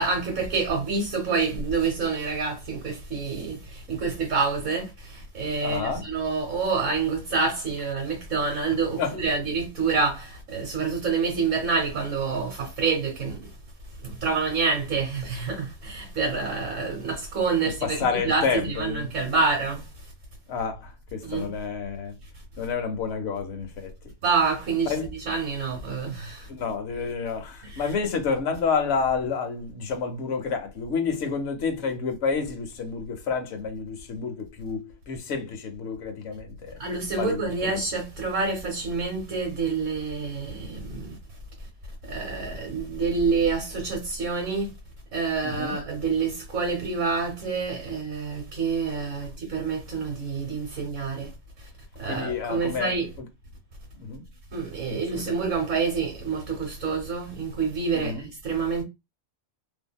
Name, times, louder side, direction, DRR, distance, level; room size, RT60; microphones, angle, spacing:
voice 1, 0.0-3.6 3.9-4.9 5.3-13.4 14.2-19.8 21.2-21.5 24.2-24.9 25.3-26.4 36.8-41.1 42.1-44.7 45.1-51.3 52.0-53.1 54.5-58.8, right 4 dB, 85° right, 1.4 m, -27 dB
voice 2, 5.6-6.1 9.0-9.2 17.8-19.1 20.5-22.2 22.6-23.9 24.8-25.1 26.5-36.8 37.2-37.8 45.4-45.8 52.0-53.3 54.0-54.2 54.8-55.3 57.9-58.3, left 5 dB, 65° left, 0.9 m, -29 dB
2.7 x 2.7 x 2.3 m
omnidirectional pair, 1.3 m